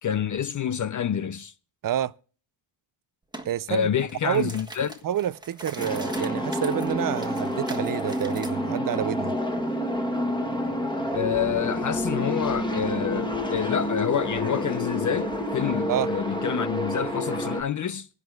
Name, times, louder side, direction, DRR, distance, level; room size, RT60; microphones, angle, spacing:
voice 1, 0.0-1.5 3.7-4.9 11.1-18.1, left 8 dB, 40° left, 0.5 m, -28 dB
voice 2, 1.8-2.1 3.5-3.9 4.2-4.6 5.0-9.4 15.9-16.1, right 10 dB, 45° right, 0.5 m, -28 dB
sound 1, 3.3-3.5 4.0-8.5, right 1 dB, 10° right, 1.5 m, -42 dB
sound 2, 5.8-17.6, left 1 dB, 10° left, 1.7 m, -28 dB
25.5 x 10.5 x 2.3 m
cardioid pair, 85°, 50 cm